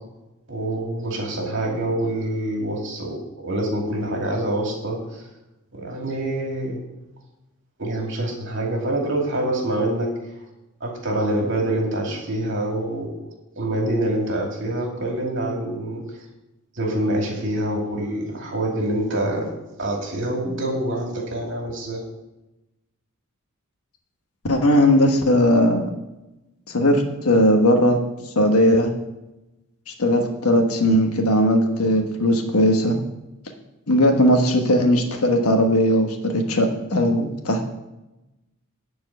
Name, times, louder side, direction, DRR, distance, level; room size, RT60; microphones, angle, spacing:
voice 1, 0.5-5.2 5.7-6.8 7.8-10.1 10.8-16.0 16.8-19.4 19.8-22.0, right 1 dB, 55° right, -1 dB, 2.6 m, -26 dB
voice 2, 24.5-25.8 26.7-28.0 28.3-28.9 30.0-33.0 33.9-37.7, equal, 85° left, 4 dB, 1.3 m, -18 dB
11.0 x 4.7 x 7.5 m, 0.98 s
head